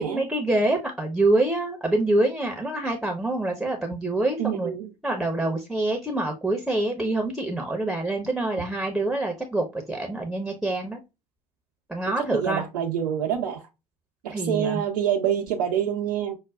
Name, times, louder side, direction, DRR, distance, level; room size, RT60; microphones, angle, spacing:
voice 1, 0.0-4.7 5.0-11.0 11.9-12.6 14.3-14.8, right 2 dB, ahead, 0.8 m, -26 dB
voice 2, 4.4-4.9 12.2-13.6 14.2-16.4, right 9 dB, 65° right, 0.6 m, -26 dB
6.0 x 2.1 x 2.3 m
figure-of-eight pair, 65°, 20 cm